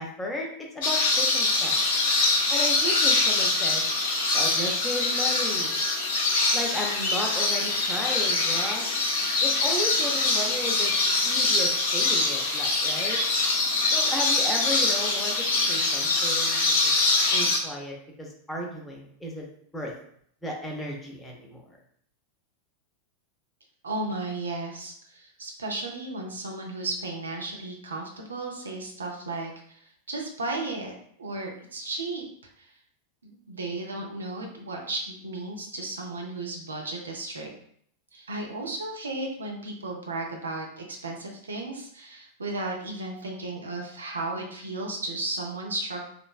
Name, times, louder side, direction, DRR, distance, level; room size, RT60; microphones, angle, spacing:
voice 1, 0.0-1.8 2.5-3.9 4.3-5.8 6.5-8.9 9.4-10.9 11.2-13.2 13.9-17.0 17.3-19.5 19.7-19.9 20.4-21.6, left 1 dB, 10° left, -1 dB, 0.6 m, -34 dB
sound 1, 0.8-17.6, left 3 dB, 55° left, 0.5 m, -24 dB
voice 2, 23.8-32.3 32.6-32.7 33.2-37.5 38.1-46.0, right 2 dB, 75° right, 0 dB, 0.5 m, -34 dB
3.1 x 2.0 x 2.3 m, 0.64 s
figure-of-eight pair, 90°, 0 cm